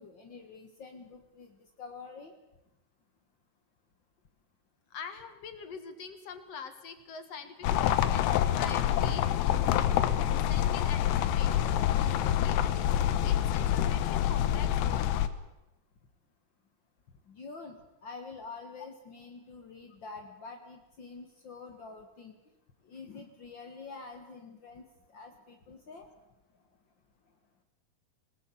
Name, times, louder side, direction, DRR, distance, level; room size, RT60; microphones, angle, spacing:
voice 1, 0.0-2.3 17.3-22.4 22.9-26.1, left 4 dB, 65° left, 5 dB, 1.1 m, -47 dB
voice 2, 4.9-9.9 10.3-12.6 13.2-15.2, left 6 dB, 50° left, 9 dB, 2.1 m, -45 dB
sound 1, 7.6-15.3, left 11 dB, 85° left, 3.2 m, -27 dB
20.5 x 20.0 x 8.5 m, 0.95 s
omnidirectional pair, 4.8 m